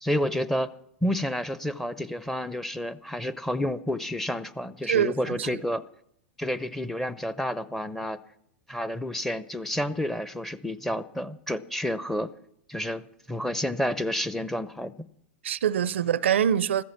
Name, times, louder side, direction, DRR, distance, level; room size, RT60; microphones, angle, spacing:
voice 1, 0.0-0.7 1.0-5.8 6.4-8.2 8.7-12.3 12.7-14.9, equal, 5° left, 0.7 m, -30 dB
voice 2, 4.9-5.6 15.4-16.8, right 9 dB, 75° right, 0.5 m, -25 dB
15.0 x 14.0 x 5.9 m
hypercardioid pair, 95°, 6 cm